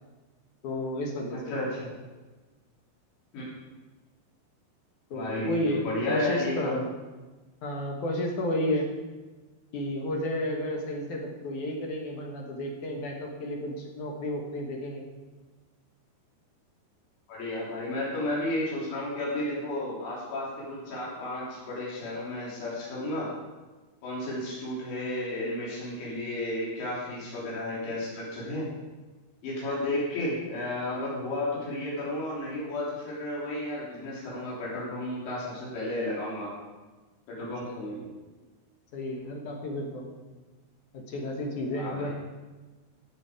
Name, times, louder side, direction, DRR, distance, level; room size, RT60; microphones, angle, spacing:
voice 1, 0.6-1.4 5.1-6.9 7.6-8.9 9.7-15.0 37.6-37.8 38.9-40.1 40.9-42.1, left 1 dB, 60° left, 0 dB, 2.4 m, -32 dB
voice 2, 1.5-1.9 3.3-3.5 5.1-5.6 5.8-6.8 17.3-23.3 24.0-28.7 29.4-36.5 37.3-38.1 41.8-42.1, left 1 dB, 85° left, -6 dB, 5.5 m, -33 dB
15.5 x 7.6 x 4.9 m, 1.2 s
omnidirectional pair, 5.0 m